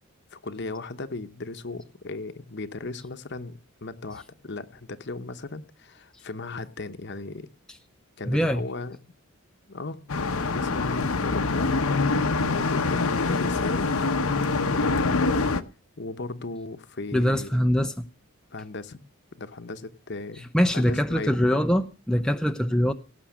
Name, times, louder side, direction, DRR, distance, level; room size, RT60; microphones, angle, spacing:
voice 1, 0.3-7.5 8.2-9.0 9.7-10.0 10.3-14.0 14.7-15.5 16.0-17.6 18.5-19.0 19.4-21.4, left 3 dB, 50° left, 1.0 m, -36 dB
voice 2, 8.3-8.6 17.1-17.9 20.5-22.9, equal, 5° left, 0.6 m, -23 dB
sound 1, 10.1-15.6, left 3 dB, 80° left, 1.0 m, -25 dB
17.5 x 6.2 x 7.4 m
head